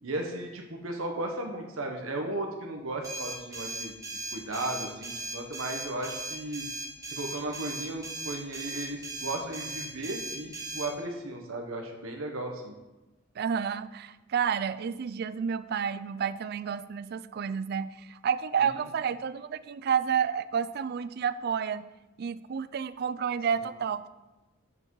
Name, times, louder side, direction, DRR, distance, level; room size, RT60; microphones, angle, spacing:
voice 1, 0.0-3.9 4.3-6.6 7.1-12.7 18.6-18.7, right 2 dB, 85° right, 2 dB, 1.1 m, -35 dB
sound 1, 3.0-10.9, right 2 dB, 15° right, 1.9 m, -38 dB
voice 2, 13.4-21.8 22.2-24.1, right 7 dB, 50° right, 15 dB, 0.3 m, -30 dB
7.9 x 6.0 x 4.7 m, 1.1 s
head